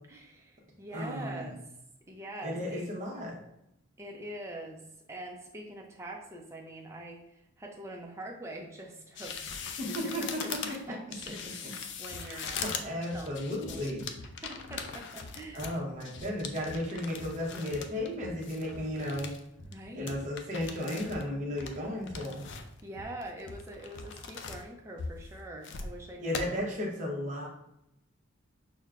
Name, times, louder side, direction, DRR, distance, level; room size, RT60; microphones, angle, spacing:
voice 1, 0.1-1.6 2.1-2.9 4.0-4.8 5.1-12.8 13.1-13.9 14.4-15.7 19.7-20.2 22.8-26.7, right 1 dB, 15° right, 0 dB, 0.5 m, -44 dB
voice 2, 0.9-1.5 2.4-3.4 9.8-10.9 11.6-11.7 12.2-14.1 15.5-19.3 19.9-22.4 26.2-27.5, left 1 dB, 35° right, -3 dB, 0.9 m, -34 dB
sound 1, 9.1-18.1 18.4-19.4 19.7-19.8 20.1-21.2 21.6-22.8 23.2-24.6 25.0-25.9 26.3-26.4, left 6 dB, 55° left, 0.3 m, -41 dB
sound 2, 12.1-12.2 12.6-12.8 13.1-19.3 19.6-24.5, left 2 dB, 80° left, 0.8 m, -48 dB
6.1 x 2.2 x 2.4 m, 0.84 s
head